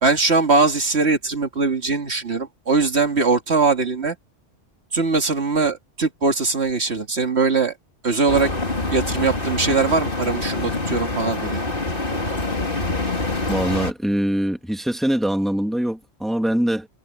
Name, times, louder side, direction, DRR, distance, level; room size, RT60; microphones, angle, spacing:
voice 1, 0.0-4.2 4.9-7.7 8.0-8.5 8.9-11.6, right 4 dB, 65° right, 2.3 m, -21 dB
sound 1, 8.3-13.9, left 2 dB, 50° left, 3.4 m, -25 dB
voice 2, 13.5-16.9, equal, ahead, 2.0 m, -23 dB
omnidirectional pair, 1.2 m